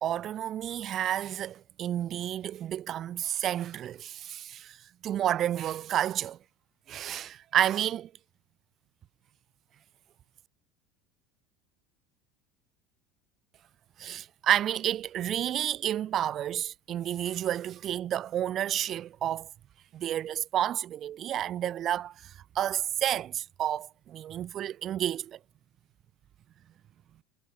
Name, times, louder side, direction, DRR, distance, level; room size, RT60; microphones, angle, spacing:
voice 1, 0.0-4.8 5.0-6.4 6.9-8.1 14.0-19.5 19.9-25.4, right 11 dB, 50° right, 1.2 m, -30 dB
hypercardioid pair, 85°, 0 cm